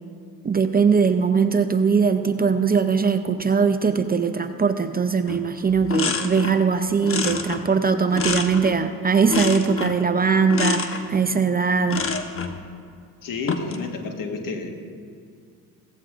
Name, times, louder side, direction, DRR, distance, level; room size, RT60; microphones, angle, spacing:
voice 1, 0.4-12.1, right 5 dB, 25° right, 9 dB, 0.6 m, -21 dB
sound 1, 5.3-5.4 5.7-6.6 7.0-8.9 9.3-10.0 10.5-11.0 11.9-12.6 13.3-13.8, left 5 dB, 35° left, 1.1 m, -27 dB
voice 2, 13.2-14.7, left 4 dB, 60° left, 4 dB, 1.6 m, -30 dB
16.5 x 15.0 x 2.5 m, 2.3 s
supercardioid pair, 75°, 38 cm